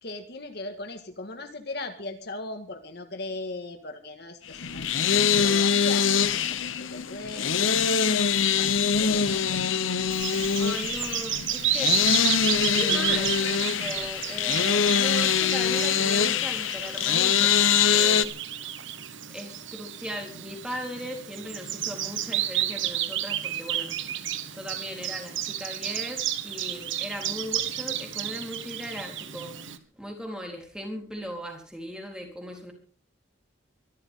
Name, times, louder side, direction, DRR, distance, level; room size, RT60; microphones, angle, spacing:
voice 1, 0.0-4.8 5.1-9.9, left 2 dB, 50° left, 6 dB, 1.8 m, -39 dB
sound 1, 4.5-18.2, left 7 dB, 75° left, 1.0 m, -24 dB
Bird vocalization bird call bird song, 10.1-29.8, right 11 dB, 70° right, 1.4 m, -32 dB
voice 2, 10.6-12.0 12.7-17.6 17.9-18.4 19.3-24.0 24.5-29.6 30.0-32.7, equal, 5° right, 2 dB, 3.9 m, -38 dB
24.0 x 13.0 x 3.7 m, 0.41 s
head